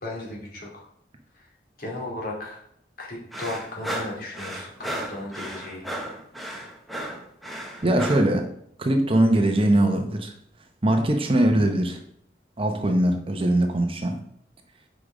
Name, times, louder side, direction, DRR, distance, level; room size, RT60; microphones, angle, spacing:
voice 1, 0.0-0.8 1.4-1.5 1.8-2.6 3.0-5.8, left 2 dB, 55° left, -2 dB, 2.4 m, -35 dB
sound 1, 3.3-8.3, right 1 dB, ahead, 1.0 m, -34 dB
voice 2, 7.8-8.4 8.8-10.3 10.8-12.0 12.6-14.2, right 1 dB, 30° right, 5 dB, 0.9 m, -21 dB
6.9 x 5.1 x 4.9 m, 0.70 s
head